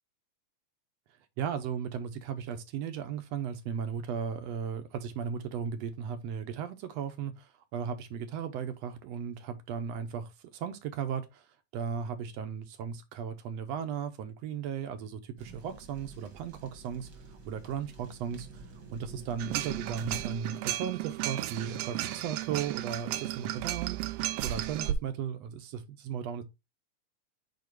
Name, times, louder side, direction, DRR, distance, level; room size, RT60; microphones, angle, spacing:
voice 1, 1.4-11.5 11.7-17.1 17.5-18.6 18.9-26.4, right 7 dB, 75° right, 1.8 m, -36 dB
sound 1, 15.4-20.4, right 3 dB, 40° right, 2.0 m, -48 dB
sound 2, 19.4-24.9, right 14 dB, 90° right, 1.3 m, -34 dB
5.2 x 4.8 x 4.5 m
omnidirectional pair, 3.3 m